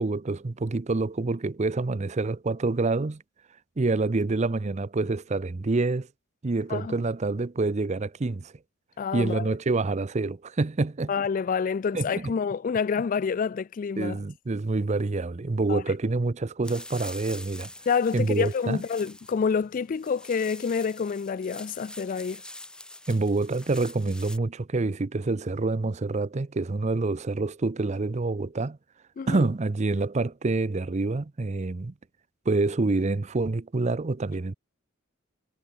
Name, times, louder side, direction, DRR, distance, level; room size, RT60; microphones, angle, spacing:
voice 1, 0.0-3.2 3.8-6.1 6.4-8.5 9.1-11.1 11.9-12.3 14.0-17.7 18.1-18.8 23.1-28.8 29.3-31.9 32.5-34.5, right 3 dB, 35° right, 0.5 m, -27 dB
voice 2, 9.0-9.4 11.1-14.2 15.7-15.8 17.9-22.4 29.2-29.4, left 6 dB, 40° left, 0.3 m, -28 dB
sound 1, 16.6-24.4, left 1 dB, 5° left, 1.6 m, -45 dB
head